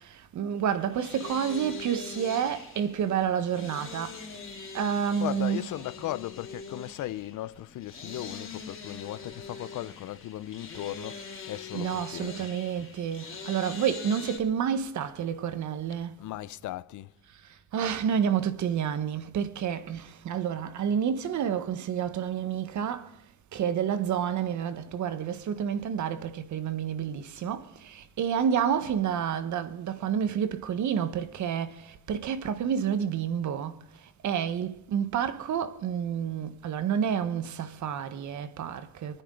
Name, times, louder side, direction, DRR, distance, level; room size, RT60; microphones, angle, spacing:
voice 1, 0.3-4.2 4.7-5.6 11.7-16.2 17.7-23.1 23.5-31.8 32.1-33.7 34.2-39.2, right 8 dB, 70° right, 1.4 m, -29 dB
sound 1, 0.6-14.4, left 4 dB, 45° left, 3.2 m, -43 dB
voice 2, 5.2-12.5 16.2-17.1, left 14 dB, 80° left, 0.7 m, -37 dB
26.5 x 9.9 x 3.9 m
cardioid pair, 90°, 30 cm